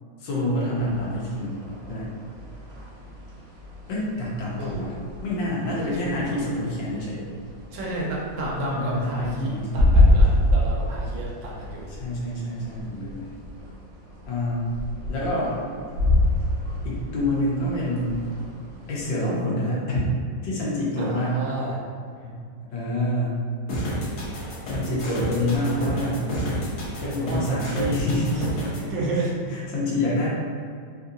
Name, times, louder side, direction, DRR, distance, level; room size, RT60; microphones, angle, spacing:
voice 1, 0.2-1.6 1.9-2.1 3.9-4.9 5.2-7.2 8.6-9.9 11.9-13.3 14.3-14.7 15.1-15.6 16.8-18.2 18.9-20.1 20.4-21.4 22.2-22.3 22.7-23.4 24.7-26.2 27.0-28.3 28.8-28.9 29.1-29.2 29.5-30.3, left 1 dB, 80° left, -6 dB, 1.6 m, -27 dB
sound 1, 0.7-19.1, left 1 dB, 60° right, 0.7 m, -27 dB
voice 2, 4.5-4.8 5.6-6.5 7.7-11.9 21.0-21.8 27.3-28.0 28.3-28.4 28.9-29.3, right 2 dB, 80° right, -4 dB, 1.4 m, -31 dB
sound 2, 23.7-28.8, equal, 60° left, 1.1 m, -30 dB
3.8 x 2.7 x 2.5 m, 2.2 s
omnidirectional pair, 2.0 m